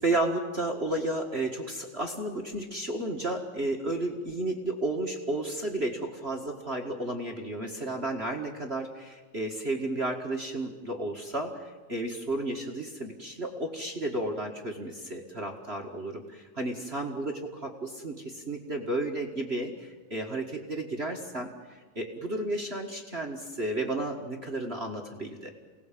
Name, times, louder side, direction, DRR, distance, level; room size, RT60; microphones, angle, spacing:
voice 1, 0.0-25.5, right 2 dB, 30° right, 2 dB, 1.2 m, -32 dB
28.5 x 18.5 x 7.4 m, 1.3 s
omnidirectional pair, 3.8 m